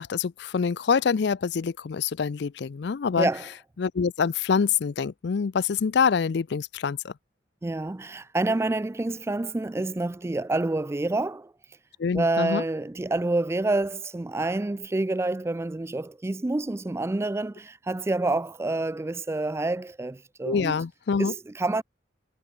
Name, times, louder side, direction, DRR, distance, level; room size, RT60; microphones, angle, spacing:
voice 1, 0.0-3.3 3.8-7.1 12.0-12.6 20.4-21.3, left 6 dB, 65° left, 0.4 m, -25 dB
voice 2, 3.2-3.5 7.6-11.5 12.1-20.8 21.2-21.8, right 2 dB, 15° right, 0.3 m, -28 dB
head